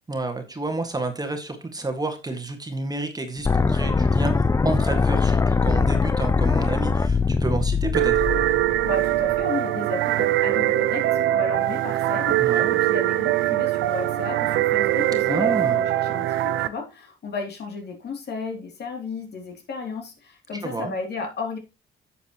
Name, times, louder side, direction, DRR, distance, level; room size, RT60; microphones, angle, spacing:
voice 1, 0.1-8.2 12.4-12.8 15.3-15.8 20.6-20.9, right 2 dB, 20° right, 1.7 m, -30 dB
sound 1, 3.5-9.4, left 4 dB, 15° left, 0.4 m, -22 dB
sound 2, 7.9-16.7, right 14 dB, 90° right, 0.7 m, -22 dB
voice 2, 8.8-21.6, left 4 dB, 55° left, 2.8 m, -34 dB
10.5 x 7.2 x 2.9 m
cardioid pair, 90°, 20 cm